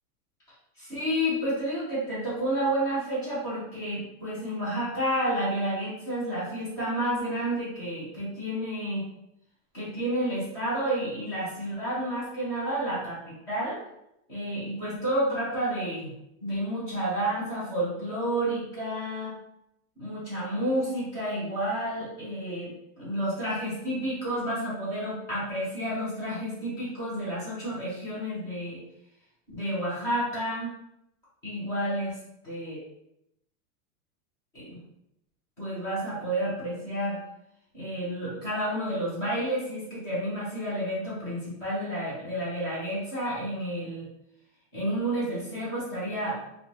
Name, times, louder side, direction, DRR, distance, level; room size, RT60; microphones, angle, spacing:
voice 1, 0.8-9.0 9.7-13.8 14.3-19.3 20.0-28.8 29.5-30.7 31.4-32.2 32.4-32.8 34.5-34.8 35.6-37.2 37.7-44.1 44.7-46.4, right 1 dB, 10° left, -10 dB, 0.3 m, -30 dB
2.5 x 2.2 x 2.9 m, 0.80 s
supercardioid pair, 165°, 43 cm